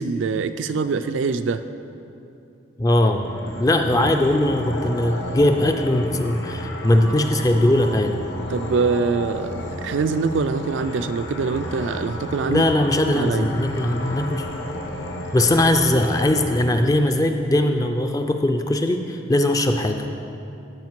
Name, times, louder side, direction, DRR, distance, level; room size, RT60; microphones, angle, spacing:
voice 1, 0.0-1.6 3.9-4.1 8.5-12.7 13.1-13.5, right 4 dB, 70° right, 10 dB, 0.3 m, -24 dB
voice 2, 2.8-3.2 3.6-8.1 12.5-14.5 15.3-20.1, left 1 dB, 15° left, 5 dB, 0.3 m, -20 dB
sound 1, 3.0-16.6, left 1 dB, 65° left, 1.0 m, -32 dB
13.0 x 5.1 x 4.6 m, 2.7 s
head